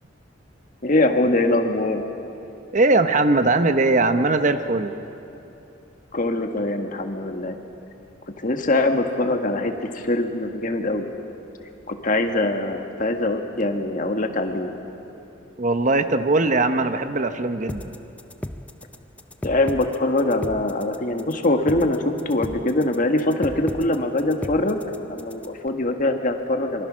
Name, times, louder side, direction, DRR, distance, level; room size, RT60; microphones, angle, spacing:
voice 1, 0.8-2.0 6.1-7.6 8.4-11.1 11.9-14.7 19.4-24.8 25.1-26.9, left 2 dB, 45° left, 5 dB, 1.6 m, -23 dB
voice 2, 2.7-4.9 15.6-17.9, right 2 dB, 40° right, 9 dB, 0.9 m, -20 dB
sound 1, 17.7-25.7, left 1 dB, 5° left, 0.5 m, -35 dB
25.0 x 24.0 x 6.3 m, 2.9 s
head